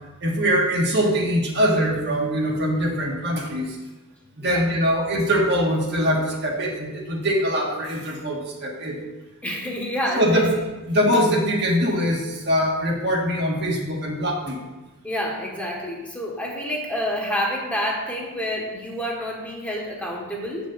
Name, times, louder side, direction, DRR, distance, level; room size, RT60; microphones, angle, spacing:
voice 1, 0.2-3.8 4.4-9.0 10.1-10.6 10.9-14.6, equal, 50° right, -1 dB, 1.6 m, -22 dB
voice 2, 9.4-10.5 15.0-20.7, equal, 5° left, -2 dB, 1.4 m, -28 dB
7.8 x 5.2 x 6.3 m, 1.1 s
head